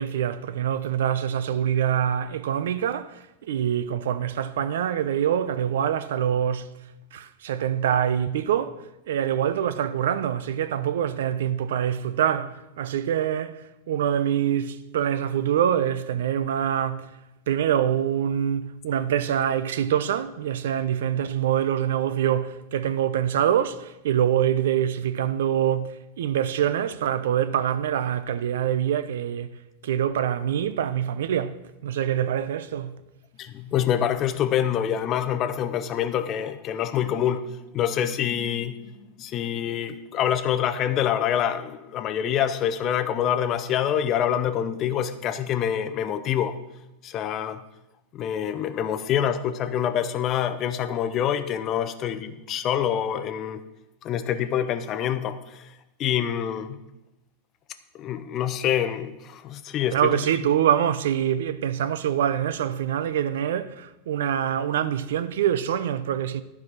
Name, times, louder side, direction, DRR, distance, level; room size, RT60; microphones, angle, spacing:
voice 1, 0.0-6.7 7.1-17.1 17.5-29.6 29.8-32.9 59.9-66.4, right 9 dB, 85° right, 0.6 m, -25 dB
voice 2, 33.4-37.4 37.7-38.9 39.2-46.6 47.0-47.6 48.1-53.6 54.0-55.7 56.0-56.8 58.0-60.2, left 9 dB, 25° left, 0.5 m, -26 dB
12.0 x 4.9 x 5.9 m
supercardioid pair, 175°, 0 cm